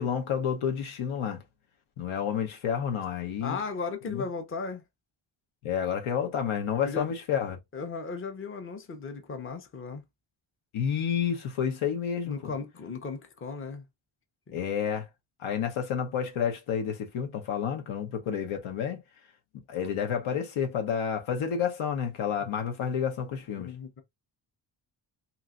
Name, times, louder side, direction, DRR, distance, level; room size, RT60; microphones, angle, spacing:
voice 1, 0.0-1.4 2.0-3.6 4.1-4.2 5.6-7.6 10.7-12.5 14.5-15.1 15.4-19.0 19.7-23.7, left 8 dB, 90° left, 1.0 m, -30 dB
voice 2, 3.4-4.8 6.8-7.1 7.7-10.0 12.2-13.8 14.5-14.6 23.6-24.0, left 4 dB, 25° left, 0.6 m, -36 dB
3.1 x 2.8 x 2.4 m
wide cardioid pair, 140°, 47 cm